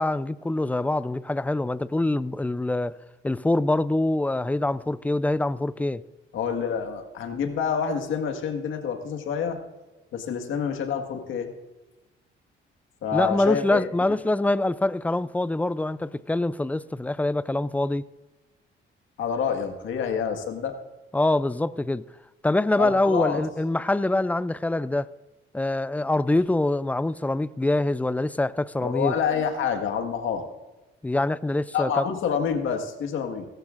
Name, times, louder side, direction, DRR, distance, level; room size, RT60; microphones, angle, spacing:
voice 1, 0.0-3.0 3.2-6.0 13.1-18.1 21.1-22.1 22.4-25.1 25.5-29.1 31.0-32.1, left 2 dB, 10° left, 0.4 m, -24 dB
voice 2, 6.3-9.6 10.1-11.5 13.0-13.8 19.2-20.8 22.8-23.4 28.8-30.5 31.7-33.5, left 7 dB, 80° left, 1.7 m, -27 dB
17.0 x 14.5 x 2.5 m
cardioid pair, 90°, 20 cm